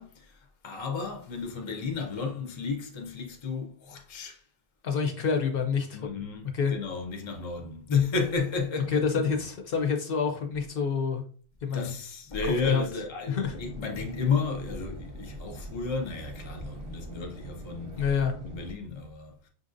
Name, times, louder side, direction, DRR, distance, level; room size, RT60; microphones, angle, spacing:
voice 1, 0.0-4.4 5.9-9.3 11.7-18.1 18.4-19.5, left 5 dB, 35° left, 0.6 m, -32 dB
voice 2, 4.8-6.0 6.5-6.7 8.9-11.2 11.6-11.9 12.4-12.8 13.3-13.6 18.0-18.4, left 6 dB, 65° left, 0.8 m, -27 dB
sound 1, 13.4-18.7, right 2 dB, 40° right, 0.7 m, -42 dB
5.4 x 2.6 x 2.5 m
omnidirectional pair, 1.1 m